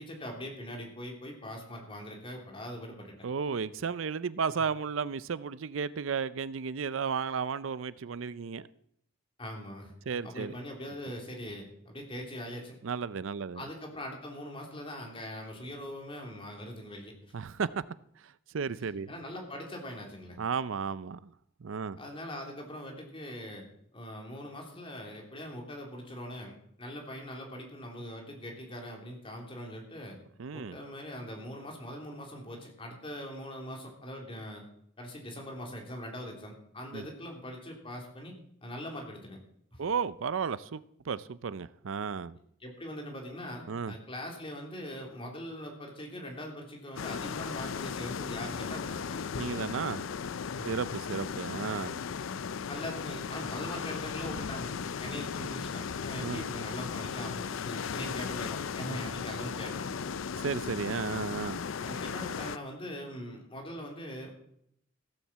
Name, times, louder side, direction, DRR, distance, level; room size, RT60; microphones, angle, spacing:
voice 1, 0.0-3.1 9.4-12.8 13.5-17.1 19.1-20.4 22.0-23.6 23.9-30.2 30.5-34.6 35.0-38.3 38.6-39.4 39.7-39.8 42.6-49.2 50.6-50.7 52.7-54.7 55.0-60.0 61.8-64.3, equal, 25° left, 3.3 m, -42 dB
voice 2, 3.2-8.7 10.1-10.5 12.8-13.6 17.3-17.7 18.2-19.1 20.4-21.3 21.6-22.0 30.4-30.8 36.9-37.0 39.8-42.4 43.7-43.9 49.4-50.0 50.7-52.0 56.2-56.4 58.9-59.0 60.4-61.6, right 5 dB, 75° right, 0.5 m, -34 dB
sound 1, 47.0-62.6, left 6 dB, 75° left, 0.5 m, -36 dB
16.0 x 7.2 x 7.4 m
head